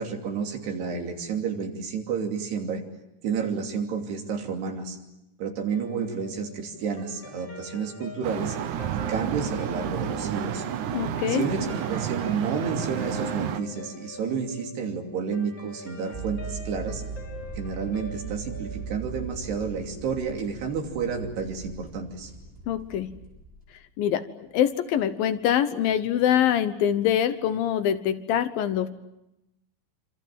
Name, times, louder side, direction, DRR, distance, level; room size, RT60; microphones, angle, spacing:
voice 1, 0.0-2.8 3.2-5.0 5.4-8.6 8.9-10.6 11.3-17.0 17.6-22.3, right 6 dB, 90° right, 2 dB, 5.0 m, -30 dB
Guitar, 5.7-20.3, left 2 dB, 30° left, 3.0 m, -44 dB
sound 1, 8.2-13.6, right 10 dB, 65° right, 2.1 m, -31 dB
voice 2, 10.9-11.4 22.7-23.1 24.0-24.2 24.5-28.9, left 10 dB, 70° left, 10 dB, 2.7 m, -24 dB
sound 2, 16.1-23.7, right 5 dB, 15° right, 6.0 m, -39 dB
26.5 x 26.5 x 7.7 m, 0.89 s
omnidirectional pair, 4.6 m